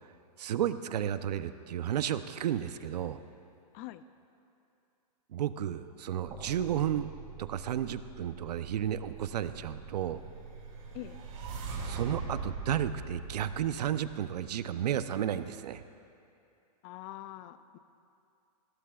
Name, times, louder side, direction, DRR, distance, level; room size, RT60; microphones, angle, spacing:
voice 1, 0.4-3.2 5.3-7.1 7.4-10.2 11.8-15.8, right 10 dB, 80° right, 12 dB, 0.7 m, -32 dB
sound 1, 6.2-12.4, right 5 dB, 25° right, 3.3 m, -48 dB
sound 2, 10.4-14.6, right 4 dB, 55° right, 3.5 m, -41 dB
voice 2, 16.8-17.8, left 15 dB, 25° left, 13 dB, 0.3 m, -44 dB
21.0 x 16.5 x 2.4 m, 2.6 s
hypercardioid pair, 150°, 20 cm